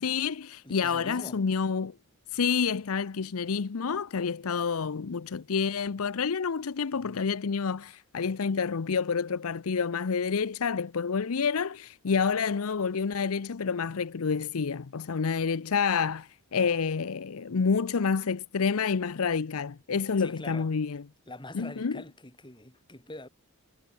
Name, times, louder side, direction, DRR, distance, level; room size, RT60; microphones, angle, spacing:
voice 1, 0.0-1.9 2.3-21.0 21.5-22.0, left 5 dB, 80° left, 0.6 m, -28 dB
voice 2, 0.6-1.4 20.2-20.7 21.3-23.3, left 2 dB, 20° left, 2.8 m, -44 dB
head